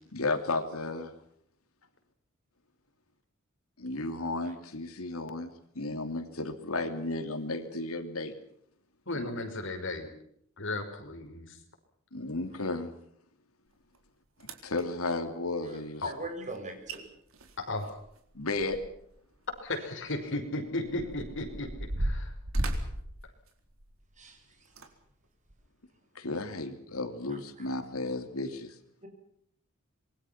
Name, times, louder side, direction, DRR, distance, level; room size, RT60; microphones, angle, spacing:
voice 1, 0.1-1.1 3.8-8.3 9.2-9.3 12.1-12.9 14.6-16.0 18.3-18.8 26.1-28.8, left 2 dB, 80° left, 7 dB, 3.0 m, -33 dB
voice 2, 9.1-10.1 10.6-11.6 16.0-16.1 17.7-18.0 19.6-22.3, left 2 dB, 60° left, 6 dB, 5.7 m, -35 dB
sound 1, 13.9-14.0 14.4-14.8 16.6-16.7 16.9-17.0 17.3-19.1 19.5-19.6 20.3-24.1 24.7-24.9 25.5-25.6, right 1 dB, 70° right, 4.1 m, -35 dB
voice 3, 16.1-17.0 24.2-24.4 29.0-29.1, right 2 dB, 35° right, 5 dB, 7.0 m, -40 dB
27.0 x 23.0 x 6.0 m, 0.70 s
head